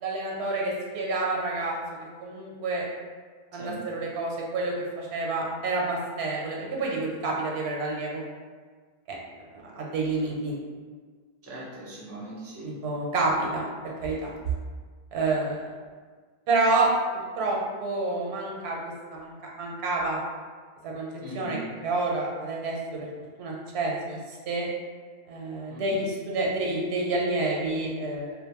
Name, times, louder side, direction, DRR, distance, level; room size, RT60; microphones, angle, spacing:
voice 1, 0.0-1.8 2.2-2.8 3.5-8.2 9.1-9.2 9.5-10.5 12.6-14.3 15.1-15.6 16.5-16.9 17.4-20.2 20.8-21.1 21.3-23.1 23.4-24.7 25.3-28.3, right 2 dB, 85° right, -2 dB, 0.8 m, -29 dB
voice 2, 11.4-12.7 21.2-21.6 25.7-26.0, right 1 dB, 20° right, -6 dB, 0.5 m, -40 dB
2.5 x 2.0 x 2.8 m, 1.5 s
omnidirectional pair, 1.1 m